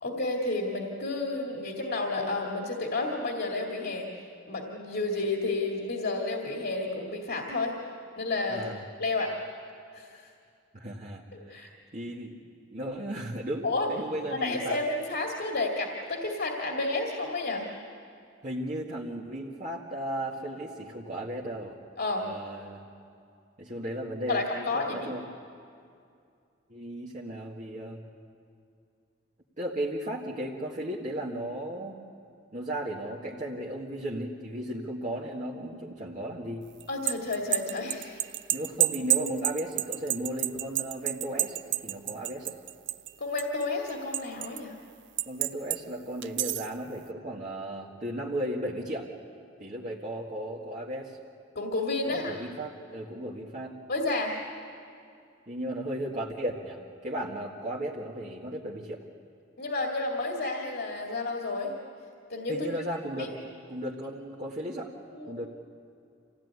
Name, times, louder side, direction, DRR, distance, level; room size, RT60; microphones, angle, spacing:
voice 1, 0.0-4.1 4.5-7.7 8.2-8.7 9.0-9.3 9.9-10.3 11.5-11.7 13.6-13.9 14.3-17.7 22.0-22.3 24.3-25.1 36.9-38.2 39.2-39.3 43.2-44.7 51.5-52.3 53.9-54.4 59.6-61.7 62.3-62.7 63.2-63.3 65.0-65.5, left 2 dB, 60° left, 0 dB, 2.4 m, -31 dB
voice 2, 8.5-8.8 10.7-11.2 11.5-12.4 12.7-14.8 18.4-21.8 22.2-22.8 23.6-25.2 26.7-28.0 29.6-32.0 32.5-36.6 38.5-42.5 45.3-49.1 49.6-51.2 52.0-53.7 55.5-59.0 62.5-63.3 63.7-64.9 65.3-65.5, right 1 dB, 40° right, -4 dB, 1.7 m, -35 dB
sound 1, 36.8-43.1 43.4-44.6 45.2-45.8 46.2-46.7, right 15 dB, 65° right, 0.5 m, -29 dB
26.5 x 16.5 x 9.6 m, 2.4 s
head